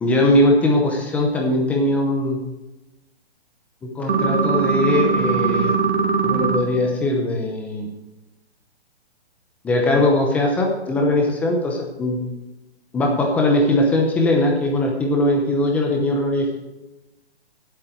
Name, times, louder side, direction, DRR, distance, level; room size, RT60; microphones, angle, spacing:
voice 1, 0.0-2.4 3.8-5.7 6.2-7.9 9.6-12.2 12.9-16.6, left 1 dB, 5° left, 0 dB, 0.7 m, -20 dB
sound 1, 4.1-6.6, right 5 dB, 70° right, 2.2 m, -20 dB
17.0 x 8.0 x 4.5 m, 1.0 s
hypercardioid pair, 160°, 34 cm